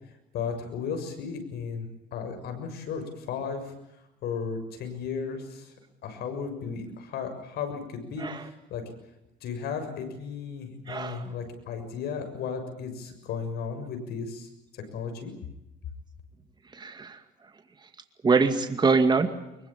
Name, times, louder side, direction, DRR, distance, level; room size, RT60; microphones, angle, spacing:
voice 1, 0.3-3.7 4.2-5.7 6.0-8.8 9.4-15.3, left 6 dB, 70° left, 6 dB, 6.9 m, -35 dB
voice 2, 10.9-11.3 16.8-17.2 18.2-19.3, right 4 dB, 25° right, 7 dB, 2.2 m, -23 dB
24.0 x 23.0 x 8.9 m, 0.88 s
cardioid pair, 110°, 17 cm